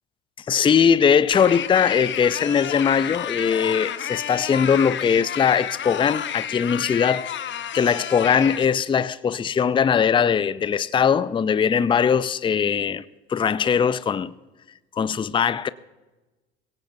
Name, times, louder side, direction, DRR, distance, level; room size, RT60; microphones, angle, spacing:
voice 1, 0.5-13.0 13.3-14.3 14.9-15.7, left 7 dB, 15° left, 0.5 m, -20 dB
sound 1, 1.3-8.6, left 9 dB, 35° left, 1.0 m, -31 dB
21.0 x 17.5 x 2.7 m
hypercardioid pair, 75°, 32 cm